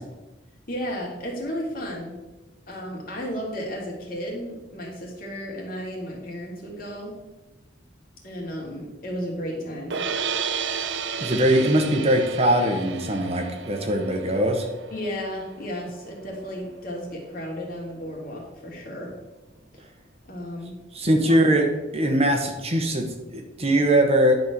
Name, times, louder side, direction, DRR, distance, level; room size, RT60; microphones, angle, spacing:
voice 1, 0.7-2.2 2.7-7.2 8.2-10.0 14.9-19.1 20.2-20.7 21.1-21.4, equal, 50° left, -2 dB, 2.9 m, -33 dB
sound 1, 9.9-16.1, right 6 dB, 80° right, 0.7 m, -32 dB
voice 2, 11.2-14.6 20.9-21.7 21.9-23.1 23.3-24.4, right 1 dB, 35° right, 3 dB, 1.3 m, -21 dB
11.0 x 4.4 x 7.0 m, 1.1 s
head